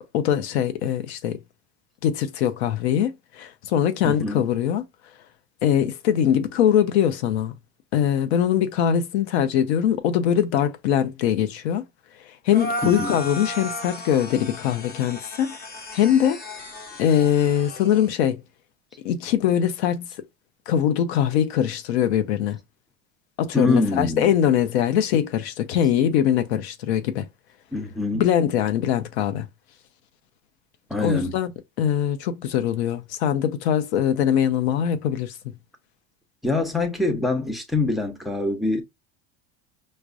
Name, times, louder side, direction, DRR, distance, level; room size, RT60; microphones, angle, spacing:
voice 1, 0.1-1.4 2.0-4.9 5.6-7.6 7.9-11.8 12.4-15.6 15.9-16.4 17.0-18.4 19.0-20.1 20.7-22.6 23.4-27.3 28.1-29.5 31.0-31.5 31.8-35.3, left 9 dB, 85° left, 0.6 m, -22 dB
voice 2, 4.0-4.5 12.8-13.3 23.5-24.3 27.7-28.3 30.9-31.4 36.4-38.8, left 2 dB, ahead, 0.6 m, -25 dB
sound 1, 12.5-18.1, left 1 dB, 30° left, 1.0 m, -35 dB
4.7 x 2.1 x 2.5 m
supercardioid pair, 115°, 32 cm